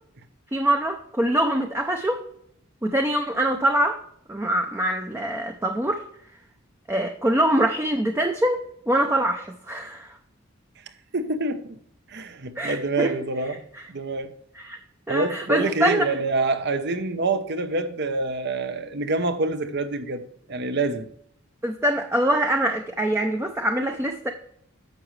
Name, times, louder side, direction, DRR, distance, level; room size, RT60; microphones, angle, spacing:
voice 1, 0.5-2.2 2.8-4.0 4.3-6.0 6.9-10.1 12.6-13.1 14.6-14.8 15.1-16.1 21.6-24.3, right 1 dB, 10° right, 0.6 m, -24 dB
voice 2, 11.1-11.8 12.1-13.6 13.9-14.3 15.1-21.1, right 3 dB, 55° right, 0.9 m, -26 dB
10.5 x 7.5 x 3.3 m
head